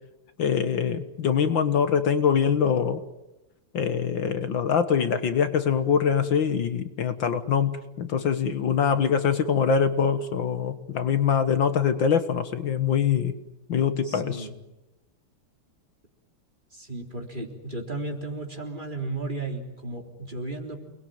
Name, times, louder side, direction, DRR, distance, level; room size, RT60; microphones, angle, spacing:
voice 1, 0.4-3.0 3.7-13.3 13.7-14.5, left 7 dB, 65° left, 10 dB, 2.0 m, -24 dB
voice 2, 14.0-14.5 16.7-20.8, right 2 dB, 20° right, 2 dB, 3.8 m, -34 dB
29.0 x 21.0 x 9.2 m, 0.95 s
omnidirectional pair, 2.4 m